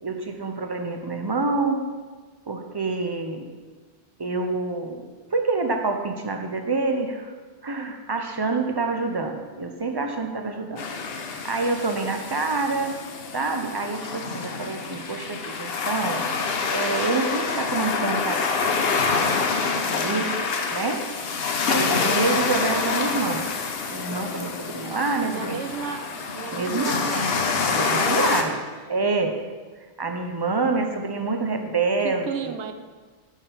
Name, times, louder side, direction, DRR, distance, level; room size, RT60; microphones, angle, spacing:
voice 1, 0.0-1.9 2.5-3.5 4.2-7.3 7.6-10.8 11.3-13.0 13.3-16.2 16.7-18.9 19.8-20.3 20.7-21.0 21.7-23.5 23.9-25.6 26.5-26.9 27.7-28.6 28.9-29.4 30.0-32.5, right 3 dB, 35° right, 4 dB, 0.4 m, -27 dB
sound 1, 10.8-28.4, left 4 dB, 60° left, 0.9 m, -26 dB
voice 2, 20.0-20.4 21.9-22.4 25.2-26.1 26.3-27.5 27.9-28.6 32.0-32.7, right 7 dB, 75° right, 9 dB, 0.9 m, -35 dB
6.4 x 5.5 x 5.5 m, 1.4 s
omnidirectional pair, 1.2 m